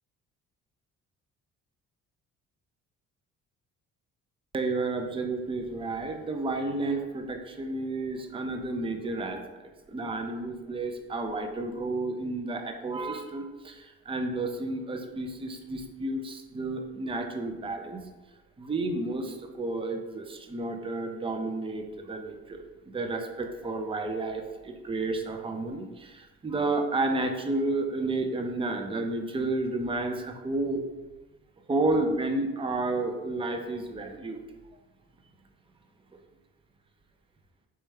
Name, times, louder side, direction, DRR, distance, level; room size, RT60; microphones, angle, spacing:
voice 1, 4.5-9.4 9.9-18.0 18.6-30.8 31.7-34.4, right 2 dB, 20° right, 4 dB, 0.5 m, -31 dB
4.5 x 3.2 x 3.3 m, 1.2 s
cardioid pair, 90°, 30 cm